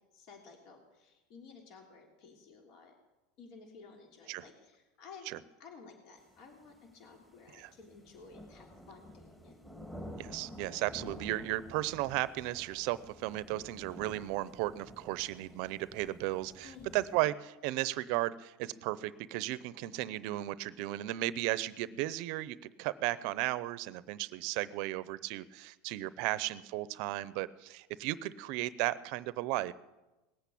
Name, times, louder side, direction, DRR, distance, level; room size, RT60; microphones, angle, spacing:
voice 1, 0.1-3.0 3.4-5.3 5.6-9.5 16.6-17.3, left 5 dB, 55° left, 2 dB, 3.2 m, -54 dB
sound 1, 6.2-17.2, equal, 10° left, 2.3 m, -51 dB
voice 2, 10.2-29.7, right 16 dB, 60° right, 17 dB, 0.7 m, -35 dB
19.0 x 8.3 x 8.6 m, 1.1 s
supercardioid pair, 130°, 0 cm